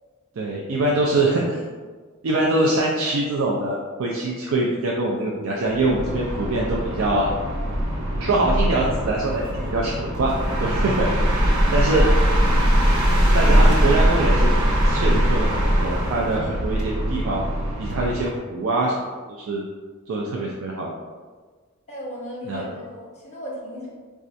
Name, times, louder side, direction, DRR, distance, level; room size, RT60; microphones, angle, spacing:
voice 1, 0.4-1.6 2.2-7.3 8.2-9.9 10.2-10.4 10.6-11.1 11.7-12.0 13.3-14.6 14.8-15.5 15.8-17.4 17.8-18.9 19.4-19.6 20.1-20.9 22.5-22.6, right 2 dB, 70° right, -3 dB, 0.4 m, -23 dB
voice 2, 1.1-1.8 12.1-12.8 21.9-23.9, equal, 35° left, -4 dB, 1.0 m, -37 dB
sound 1, 5.7-18.4, equal, 90° right, 0.8 m, -21 dB
4.2 x 2.3 x 2.5 m, 1.5 s
head